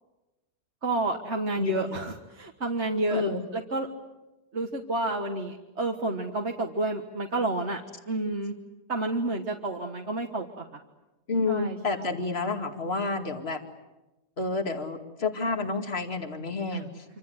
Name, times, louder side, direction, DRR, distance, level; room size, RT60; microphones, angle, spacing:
voice 1, 0.8-3.9 4.5-7.8 8.1-8.5 8.9-10.7 11.5-12.1 16.7-16.8, right 2 dB, 45° right, 2 dB, 1.9 m, -30 dB
voice 2, 1.5-2.0 3.1-3.5 11.3-13.6 14.4-17.0, left 3 dB, 40° left, 5 dB, 2.5 m, -30 dB
27.0 x 26.5 x 8.0 m, 1.0 s
omnidirectional pair, 1.6 m